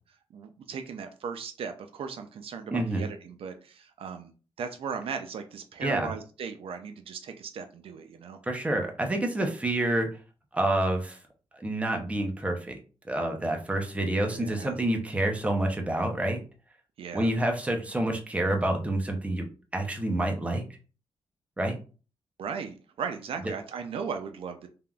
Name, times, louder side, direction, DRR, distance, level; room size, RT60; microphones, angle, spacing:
voice 1, 0.3-8.4 14.3-14.7 17.0-17.3 22.4-24.7, right 6 dB, 70° right, 7 dB, 0.4 m, -37 dB
voice 2, 2.7-3.0 5.8-6.1 8.4-10.1 10.5-11.2 11.5-12.8 13.1-16.4 17.1-19.4 19.7-20.6 21.6-21.8, right 1 dB, 15° right, 3 dB, 0.6 m, -28 dB
3.4 x 2.4 x 2.2 m, 0.36 s
wide cardioid pair, 115°, 10 cm